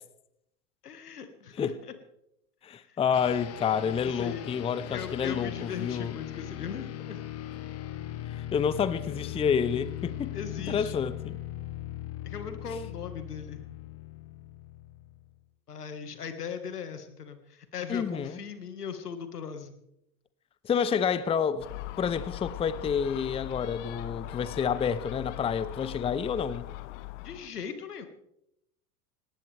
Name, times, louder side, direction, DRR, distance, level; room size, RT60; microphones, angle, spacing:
voice 1, 0.8-1.7 2.9-3.0 4.0-4.4 4.9-7.2 10.3-11.0 12.2-13.6 15.7-19.7 27.2-28.1, left 7 dB, 80° left, 1.8 m, -39 dB
voice 2, 2.6-6.2 8.3-10.3 10.7-11.4 17.9-18.4 20.6-21.7 22.0-26.7, left 7 dB, 15° left, 0.6 m, -29 dB
sound 1, 3.1-15.3, left 13 dB, 30° left, 1.5 m, -39 dB
Gull seagull, 21.6-27.5, left 18 dB, 50° left, 0.9 m, -40 dB
18.5 x 18.0 x 3.4 m
figure-of-eight pair, 85°, 46 cm